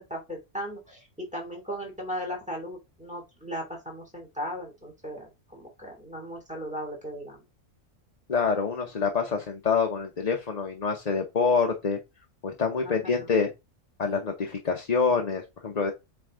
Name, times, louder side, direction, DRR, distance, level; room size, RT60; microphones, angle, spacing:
voice 1, 0.0-7.4 12.8-13.3, equal, 5° right, 2.7 m, -37 dB
voice 2, 8.3-12.0 12.4-13.5 14.0-15.9, left 5 dB, 35° left, 0.9 m, -26 dB
7.9 x 3.5 x 3.7 m
omnidirectional pair, 1.3 m